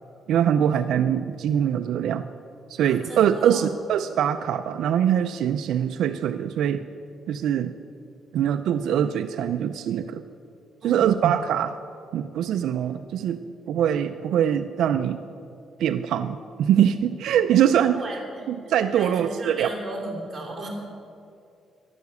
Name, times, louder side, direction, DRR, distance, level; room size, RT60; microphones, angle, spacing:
voice 1, 0.3-2.2 2.7-6.9 7.3-7.7 8.3-10.2 10.8-11.8 12.1-15.2 15.8-18.0 18.5-19.7, right 9 dB, 75° right, 9 dB, 0.5 m, -23 dB
voice 2, 2.8-3.7 10.8-11.1 17.9-20.7, right 2 dB, 20° right, -2 dB, 3.1 m, -36 dB
12.0 x 11.5 x 8.2 m, 2.5 s
cardioid pair, 175°, 0 cm